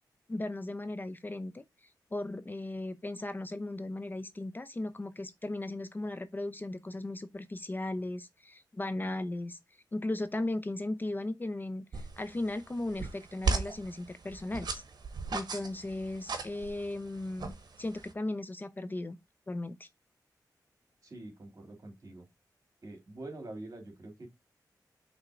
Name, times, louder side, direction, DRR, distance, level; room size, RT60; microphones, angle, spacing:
voice 1, 0.3-1.6 2.1-9.6 9.9-14.8 15.3-19.2 19.5-19.9, left 2 dB, 25° left, 0.6 m, -36 dB
sound 1, 11.9-18.1, right 4 dB, 70° right, 1.1 m, -37 dB
voice 2, 21.0-22.3 22.8-24.3, right 2 dB, 50° right, 2.9 m, -45 dB
5.7 x 3.5 x 5.0 m
wide cardioid pair, 85°, 7 cm